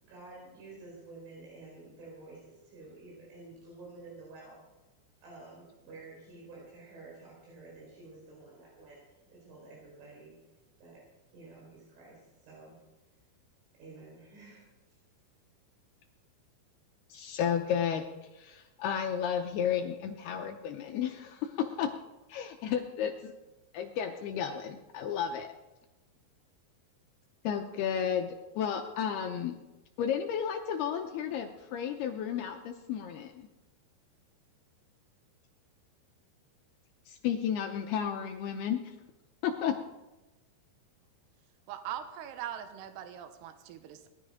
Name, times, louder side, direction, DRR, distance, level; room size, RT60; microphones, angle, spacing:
voice 1, 0.0-4.6 5.2-10.4 10.8-11.0 11.3-12.8 13.8-14.7, right 3 dB, 90° right, -5 dB, 7.0 m, -50 dB
voice 2, 17.1-18.0 18.3-21.9 22.3-23.3 23.7-25.5 27.4-29.6 30.0-33.5 37.1-38.9 39.4-39.8, left 8 dB, 80° left, 4 dB, 2.4 m, -32 dB
voice 3, 41.7-44.1, right 10 dB, 70° right, 8 dB, 2.9 m, -41 dB
19.0 x 12.5 x 5.0 m, 1.1 s
omnidirectional pair, 5.4 m